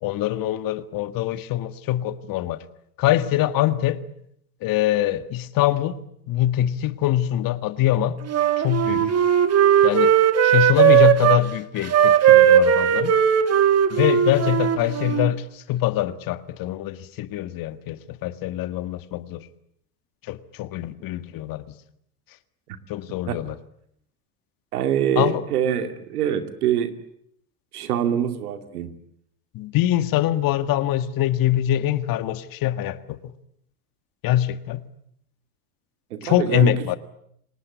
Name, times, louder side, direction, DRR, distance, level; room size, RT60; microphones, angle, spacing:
voice 1, 0.0-2.6 3.0-4.0 4.6-6.0 6.3-8.2 8.6-9.1 9.8-10.1 10.4-13.1 13.9-19.4 20.3-21.7 22.9-23.6 25.2-25.4 29.5-33.3 34.2-34.8 36.2-37.0, left 13 dB, 50° left, 12 dB, 1.8 m, -23 dB
Wind instrument woodwind instrument, 8.3-11.4 11.8-15.3, right 9 dB, 35° right, 2.3 m, -17 dB
voice 2, 24.7-27.0 27.7-28.9 36.1-36.9, right 9 dB, 80° right, 8 dB, 2.6 m, -25 dB
28.5 x 19.0 x 9.2 m, 0.72 s
hypercardioid pair, 90°, 44 cm